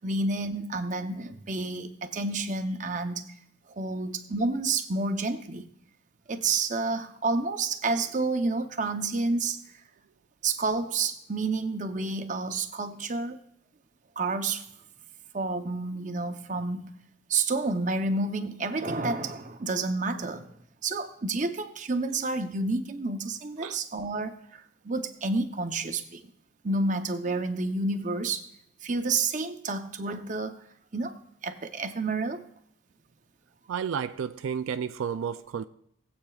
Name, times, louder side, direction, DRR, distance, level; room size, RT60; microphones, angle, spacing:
voice 1, 0.0-3.3 3.8-5.7 6.3-9.6 10.4-13.4 14.2-14.6 15.3-16.9 17.3-20.5 20.8-26.2 26.6-28.5 28.8-30.6 30.9-31.2 31.4-32.4, right 3 dB, 40° right, 0.7 m, -29 dB
voice 2, 33.7-35.7, right 7 dB, 85° right, 0.3 m, -31 dB
20.0 x 8.0 x 2.4 m
head